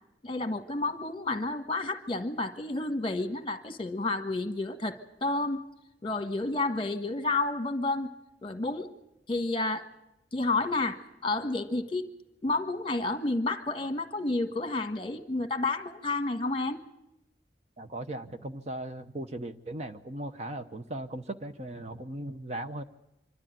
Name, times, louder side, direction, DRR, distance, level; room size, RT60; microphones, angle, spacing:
voice 1, 0.2-5.7 6.0-8.1 8.4-8.9 9.3-9.9 10.3-12.1 12.4-16.8, left 2 dB, 30° left, 8 dB, 1.4 m, -30 dB
voice 2, 17.8-22.8, right 1 dB, 40° right, 8 dB, 0.8 m, -38 dB
25.5 x 12.5 x 9.1 m, 0.91 s
head